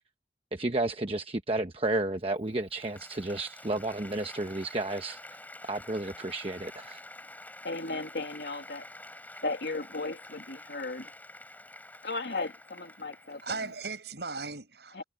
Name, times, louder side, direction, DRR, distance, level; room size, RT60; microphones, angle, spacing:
voice 1, 0.5-5.2 5.7-7.0, right 2 dB, 35° right, 1.0 m, -32 dB
Applause, 2.3-13.9, left 2 dB, 10° left, 4.0 m, -48 dB
voice 2, 7.6-8.9 9.4-11.1 12.0-13.4 14.9-15.0, left 3 dB, 65° left, 2.5 m, -35 dB
voice 3, 13.3-15.0, right 4 dB, 70° right, 7.0 m, -38 dB
head